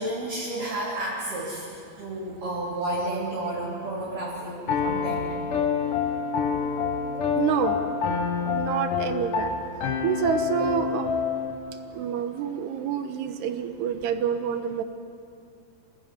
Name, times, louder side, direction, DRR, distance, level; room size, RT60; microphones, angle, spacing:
voice 1, 0.0-5.3, right 1 dB, 50° right, -7 dB, 5.0 m, -31 dB
sound 1, 2.6-11.4, left 4 dB, 75° left, 5.8 m, -45 dB
Piano, 4.7-11.5, left 6 dB, 60° left, 2.6 m, -27 dB
voice 2, 7.3-7.8 8.5-9.5 10.0-11.1 11.9-14.8, right 8 dB, 75° right, 8 dB, 2.9 m, -27 dB
26.5 x 19.0 x 9.5 m, 2.6 s
omnidirectional pair, 5.1 m